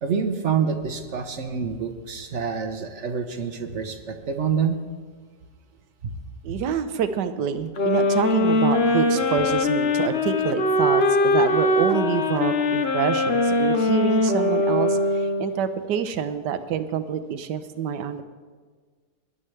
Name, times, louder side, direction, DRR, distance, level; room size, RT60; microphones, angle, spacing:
voice 1, 0.0-4.8 6.0-6.1 6.5-6.6, right 6 dB, 50° right, 7 dB, 1.0 m, -27 dB
voice 2, 6.4-18.2, right 7 dB, 80° right, 11 dB, 1.4 m, -27 dB
sound 1, 7.8-15.7, left 1 dB, 45° left, 1.0 m, -21 dB
20.0 x 11.5 x 3.3 m, 1.5 s
omnidirectional pair, 1.8 m